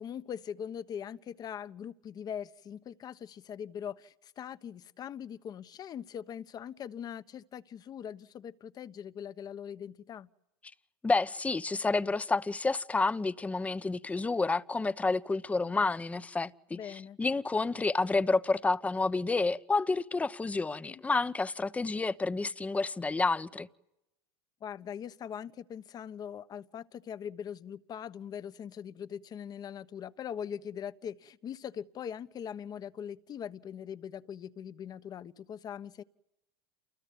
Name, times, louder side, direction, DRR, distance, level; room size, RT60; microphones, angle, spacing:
voice 1, 0.0-10.3 16.7-17.2 20.9-21.0 24.6-36.0, left 8 dB, 30° left, 1.2 m, -41 dB
voice 2, 11.0-23.7, left 3 dB, 10° left, 1.0 m, -29 dB
29.0 x 21.0 x 9.6 m
hypercardioid pair, 110°, 12 cm